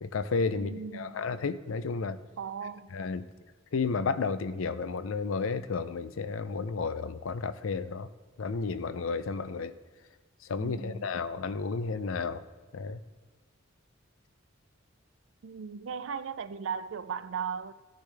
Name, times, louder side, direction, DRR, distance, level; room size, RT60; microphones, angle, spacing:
voice 1, 0.0-2.2 2.9-3.3 3.7-8.1 8.4-9.7 10.4-12.4 12.7-13.0, left 4 dB, 85° left, 0.5 m, -32 dB
voice 2, 0.5-1.2 2.4-2.9 10.6-11.1 15.4-17.7, right 6 dB, 70° right, 0.4 m, -37 dB
15.5 x 10.5 x 3.3 m
head